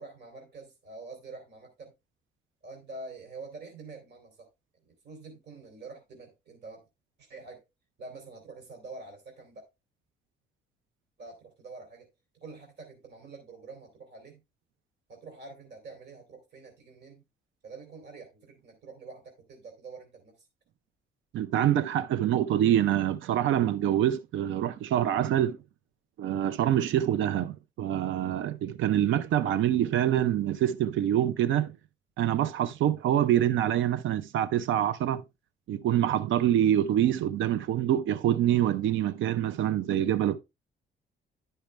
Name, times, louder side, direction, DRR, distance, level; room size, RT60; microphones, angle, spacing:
voice 1, 0.0-1.9 2.6-4.5 4.8-6.8 7.2-7.6 8.0-9.6 11.2-12.1 12.4-14.4 15.1-17.2 17.6-20.5, right 3 dB, 60° right, 2.7 m, -46 dB
voice 2, 21.3-25.6 26.2-31.7 32.2-35.2 35.7-40.4, right 11 dB, 80° right, 0.6 m, -25 dB
10.5 x 5.6 x 3.2 m
cardioid pair, 90°, 20 cm